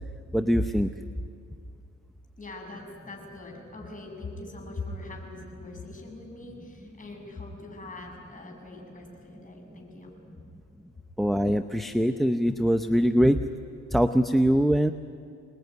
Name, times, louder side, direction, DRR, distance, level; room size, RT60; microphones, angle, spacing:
voice 1, 0.3-0.9 11.2-13.4 13.9-14.9, equal, ahead, 8 dB, 0.8 m, -22 dB
voice 2, 2.4-10.1, left 2 dB, 25° left, 1 dB, 7.5 m, -42 dB
28.0 x 20.0 x 9.5 m, 2.4 s
cardioid pair, 90°, 30 cm